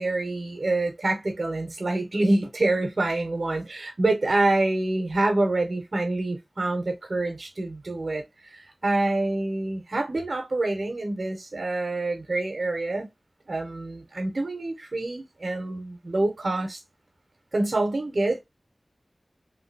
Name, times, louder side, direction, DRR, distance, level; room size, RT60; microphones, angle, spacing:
voice 1, 0.0-13.1 13.5-16.8 17.5-18.4, right 2 dB, 65° right, 1.0 m, -26 dB
3.2 x 2.6 x 2.6 m
wide cardioid pair, 45°, 0 cm